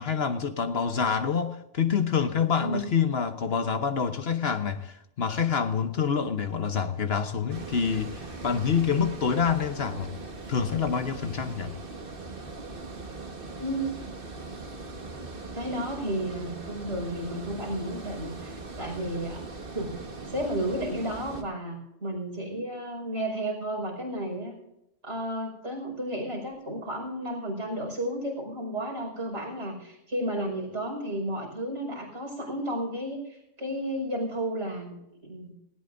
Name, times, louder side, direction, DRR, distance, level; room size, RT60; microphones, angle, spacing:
voice 1, 0.0-10.1 10.5-11.7, left 6 dB, 55° left, 1.1 m, -27 dB
Water, 7.5-21.4, right 3 dB, 45° right, 1.7 m, -40 dB
voice 2, 13.6-14.0 15.5-19.4 19.7-19.9 20.3-24.6 25.0-35.0 35.2-35.5, right 1 dB, 65° right, 5.5 m, -32 dB
19.0 x 17.5 x 2.6 m
omnidirectional pair, 1.3 m